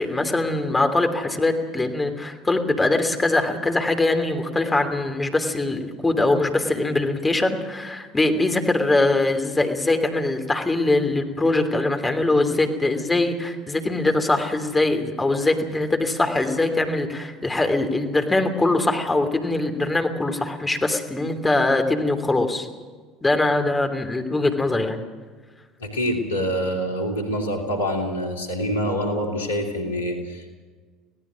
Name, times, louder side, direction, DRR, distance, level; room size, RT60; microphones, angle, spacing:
voice 1, 0.0-22.7 23.2-25.0, left 2 dB, 15° left, 5 dB, 3.0 m, -22 dB
voice 2, 25.8-30.5, equal, 80° left, 2 dB, 3.1 m, -26 dB
26.0 x 17.5 x 6.3 m, 1.5 s
figure-of-eight pair, 65°, 0 cm